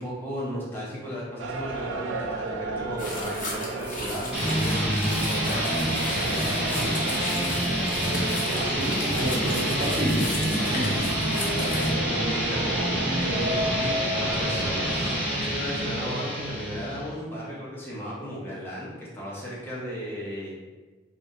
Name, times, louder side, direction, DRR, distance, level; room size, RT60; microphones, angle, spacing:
voice 1, 0.0-7.0 12.1-12.7 13.1-20.6, equal, 10° left, -7 dB, 0.7 m, -35 dB
sound 1, 1.4-15.2, right 2 dB, 90° right, 0.4 m, -33 dB
sound 2, 3.0-11.9, left 2 dB, 45° left, 0.6 m, -36 dB
sound 3, 4.3-17.2, equal, 10° right, 1.0 m, -27 dB
voice 2, 8.5-11.1, equal, 50° right, -3 dB, 0.7 m, -30 dB
2.7 x 2.5 x 4.1 m, 1.3 s
head